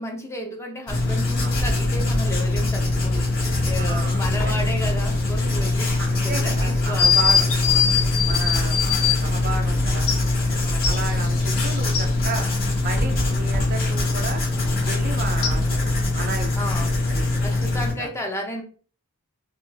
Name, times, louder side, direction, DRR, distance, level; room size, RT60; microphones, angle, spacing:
voice 1, 0.0-3.3 3.6-5.9 6.2-7.1 10.6-11.6 13.0-13.3 16.5-16.9 17.4-18.6, left 1 dB, 10° left, 1 dB, 0.7 m, -33 dB
Writing, 0.9-17.9, left 2 dB, 40° left, 2.0 m, -23 dB
voice 2, 3.8-4.6 6.0-7.5 7.7-7.8 8.3-10.1 10.5-12.5 12.8-14.4 14.9-16.6 17.1-17.2 18.0-18.1, right 4 dB, 40° right, 5 dB, 0.5 m, -33 dB
sound 1, 7.0-9.2 10.1-10.2 10.8-12.1 15.4-15.5, left 7 dB, 70° left, 0.8 m, -21 dB
4.4 x 2.5 x 3.4 m, 0.40 s
head